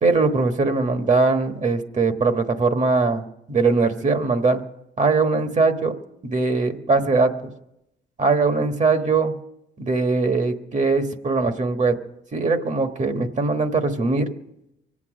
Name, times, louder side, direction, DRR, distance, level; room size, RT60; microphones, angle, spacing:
voice 1, 0.0-3.2 3.5-4.6 5.0-5.9 6.2-7.3 8.2-9.3 9.8-12.0 12.3-14.3, right 3 dB, 35° right, 7 dB, 1.3 m, -21 dB
23.5 x 8.5 x 6.3 m, 0.84 s
cardioid pair, 90°, 20 cm